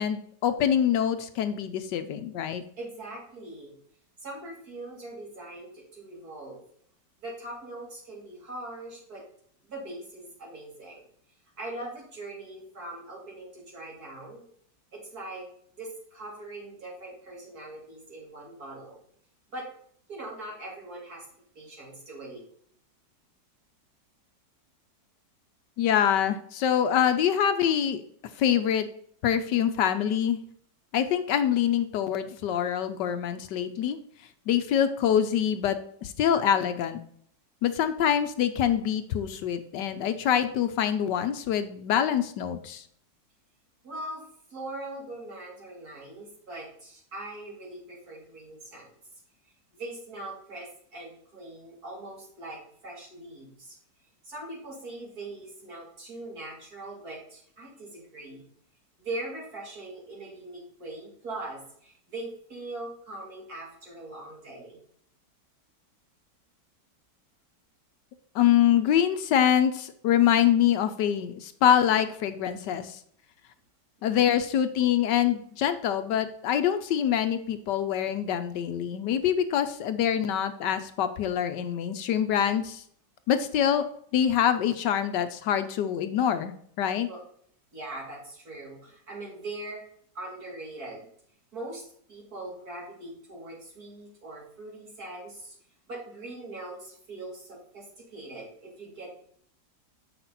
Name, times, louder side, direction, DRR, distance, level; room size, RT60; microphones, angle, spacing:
voice 1, 0.0-2.6 25.8-28.0 28.4-28.9 29.2-30.4 30.9-34.0 34.5-37.0 37.6-42.8 68.3-73.0 74.0-82.8 83.3-83.9 84.1-87.1, left 9 dB, 75° left, 10 dB, 1.2 m, -25 dB
voice 2, 2.8-3.7 4.2-6.6 7.2-9.2 9.6-11.0 11.6-14.4 14.9-15.5 15.8-19.0 19.5-19.7 20.1-21.3 21.6-22.4 43.8-48.9 49.7-53.8 54.2-58.5 59.0-64.8 87.1-87.2 87.7-89.8 90.2-91.1 91.5-95.6 95.9-99.1, right 2 dB, 55° right, -3 dB, 3.4 m, -41 dB
7.7 x 6.0 x 4.0 m, 0.62 s
omnidirectional pair, 2.0 m